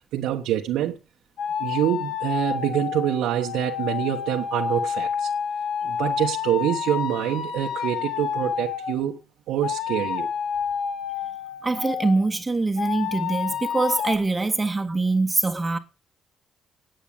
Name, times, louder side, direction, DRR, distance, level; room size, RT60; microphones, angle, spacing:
voice 1, 0.1-1.0 1.6-5.3 5.8-9.2 9.5-10.3, right 11 dB, 90° right, 1.3 m, -26 dB
sound 1, 1.4-9.0 9.6-12.3 12.8-14.2, left 7 dB, 75° left, 2.0 m, -29 dB
voice 2, 11.6-15.8, right 3 dB, 20° right, 1.4 m, -24 dB
9.2 x 9.1 x 8.7 m
cardioid pair, 100°, 0 cm